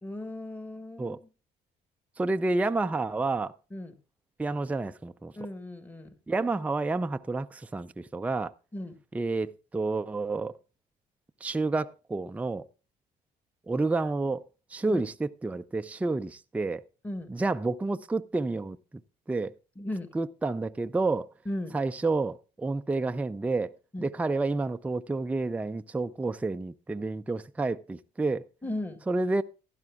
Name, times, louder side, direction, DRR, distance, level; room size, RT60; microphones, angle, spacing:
voice 1, 0.0-1.3 3.7-4.0 5.4-6.1 8.7-9.0 14.9-15.0 17.0-17.3 19.7-20.1 21.4-21.8 23.9-24.1 28.6-29.0, left 1 dB, 10° left, 1.6 m, -36 dB
voice 2, 2.2-3.5 4.4-5.3 6.3-8.5 9.1-10.6 11.4-12.7 13.7-14.4 14.7-16.8 17.3-18.8 19.3-19.6 20.1-21.3 21.7-23.7 24.0-28.5 29.1-29.4, right 3 dB, 10° right, 0.4 m, -29 dB
15.5 x 11.5 x 2.3 m
cardioid pair, 110°, 17 cm